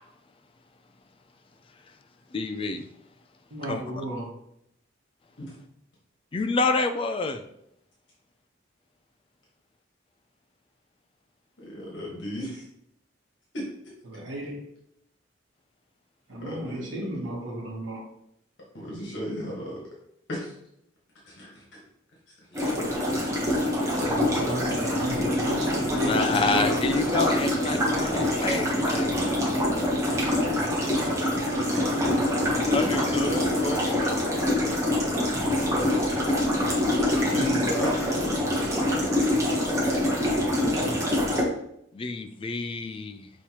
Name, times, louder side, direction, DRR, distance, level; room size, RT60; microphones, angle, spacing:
voice 1, 2.3-2.9 3.6-3.8 6.3-7.4 22.5-22.7 23.8-24.4 25.8-29.5 32.7-34.2 41.9-43.3, left 3 dB, 30° left, 7 dB, 0.3 m, -29 dB
voice 2, 3.5-4.3 14.1-14.6 16.3-18.0 24.2-26.2 26.5-26.6 31.3-31.6 36.7-37.6 40.5-41.0, right 1 dB, 90° right, -3 dB, 1.1 m, -35 dB
voice 3, 11.6-12.6 13.5-13.6 16.4-17.0 18.7-19.8 20.3-20.5 21.2-21.6 22.5-22.6 37.3-38.1 39.8-40.2, equal, 65° left, -5 dB, 1.4 m, -35 dB
sound 1, 22.5-41.4, left 1 dB, 15° right, 0.9 m, -25 dB
5.5 x 3.0 x 2.9 m, 0.75 s
head